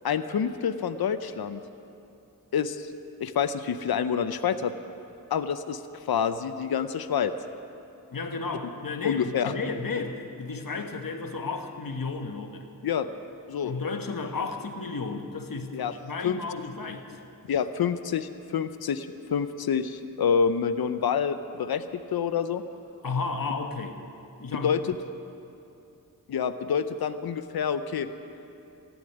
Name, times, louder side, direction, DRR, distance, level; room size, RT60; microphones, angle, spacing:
voice 1, 0.0-1.6 2.5-2.9 3.2-4.7 5.3-5.8 6.1-7.3 9.0-9.5 12.8-13.1 13.5-13.7 15.7-15.9 16.2-16.4 17.5-22.6 24.5-25.0 26.3-28.1, left 7 dB, 85° left, 10 dB, 0.7 m, -27 dB
voice 2, 8.1-12.7 13.6-15.8 16.0-17.1 23.0-24.0 24.4-24.7, left 4 dB, 65° left, 5 dB, 1.4 m, -33 dB
14.5 x 9.7 x 10.0 m, 2.7 s
cardioid pair, 45°, 36 cm